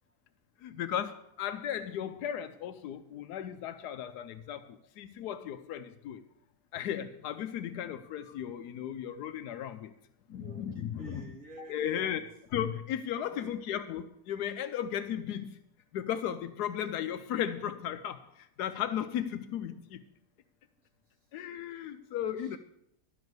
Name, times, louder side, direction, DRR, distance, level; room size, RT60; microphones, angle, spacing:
voice 1, 0.6-6.2 6.7-9.9 10.3-11.1 11.7-12.2 12.5-15.6 15.9-20.0 21.3-22.6, left 10 dB, 85° left, 9 dB, 1.2 m, -35 dB
voice 2, 10.3-12.3 13.1-13.8 22.4-22.6, right 2 dB, 55° right, -1 dB, 2.8 m, -49 dB
12.5 x 6.2 x 8.0 m, 0.77 s
omnidirectional pair, 1.7 m